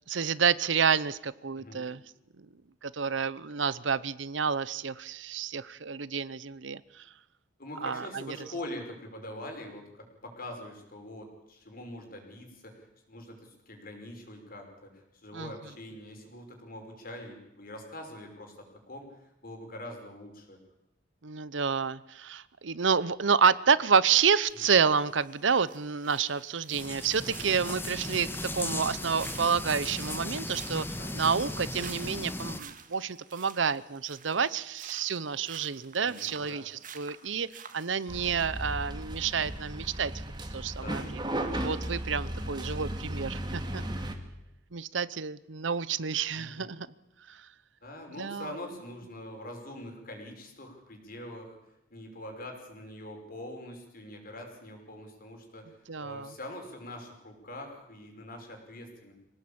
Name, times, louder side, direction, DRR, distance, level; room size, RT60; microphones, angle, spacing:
voice 1, 0.1-2.0 2.8-6.8 7.8-8.4 15.3-15.5 21.2-30.9 31.1-40.1 40.5-41.0 41.4-43.8 44.7-46.9 47.3-47.4 48.2-48.5 55.9-56.3, right 6 dB, 75° right, 18 dB, 0.8 m, -29 dB
voice 2, 7.6-20.6 24.6-24.7 27.1-27.4 31.0-31.1 36.0-36.7 40.8-41.4 43.7-44.0 46.3-46.7 47.8-51.6 51.9-59.1, left 1 dB, 50° left, 3 dB, 5.6 m, -44 dB
sound 1, 24.5-38.2, right 8 dB, 45° right, 1.9 m, -51 dB
sound 2, 26.7-32.6, left 1 dB, 10° left, 1.4 m, -37 dB
sound 3, 38.1-44.1, right 1 dB, 25° right, 2.5 m, -35 dB
25.0 x 17.5 x 8.8 m, 0.88 s
head